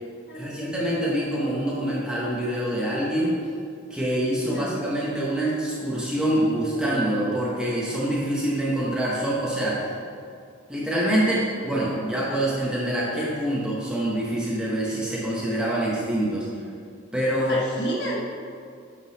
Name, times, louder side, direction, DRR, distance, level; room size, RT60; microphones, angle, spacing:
voice 1, 0.3-3.4 3.9-9.8 10.7-16.5 17.1-17.6, right 1 dB, 5° right, -6 dB, 1.0 m, -25 dB
voice 2, 17.5-18.2, right 1 dB, 60° left, -5 dB, 1.2 m, -30 dB
8.2 x 4.0 x 4.1 m, 2.3 s
head